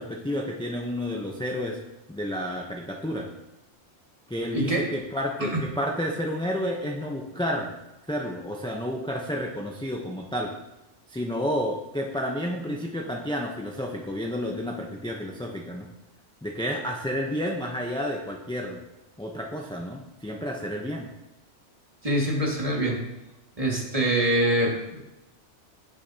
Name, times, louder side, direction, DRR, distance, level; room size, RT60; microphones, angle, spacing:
voice 1, 0.0-1.8 2.1-3.3 4.3-7.7 8.1-10.5 11.1-15.9 16.4-18.8 19.2-21.1, equal, 5° left, 0 dB, 0.6 m, -30 dB
voice 2, 4.5-4.9 5.4-5.5 22.0-23.0 23.6-25.1, right 1 dB, 30° right, -2 dB, 2.0 m, -24 dB
16.5 x 6.4 x 2.8 m, 0.96 s
omnidirectional pair, 1.2 m